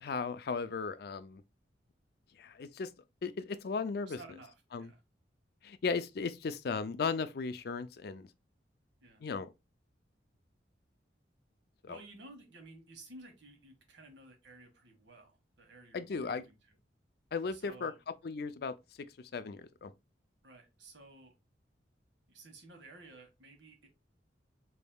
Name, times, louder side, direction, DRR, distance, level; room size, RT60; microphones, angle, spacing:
voice 1, 0.0-1.4 2.4-2.9 3.2-4.2 4.7-4.9 5.6-8.3 9.2-9.5 11.8-12.0 15.9-16.4 17.3-17.9 18.2-19.1 19.3-19.9, left 4 dB, 60° left, 0.4 m, -36 dB
voice 2, 4.1-5.0 9.0-9.3 11.9-16.8 17.5-18.0 20.4-21.3 22.3-23.9, right 2 dB, 90° right, 1.4 m, -54 dB
4.1 x 3.5 x 2.3 m
head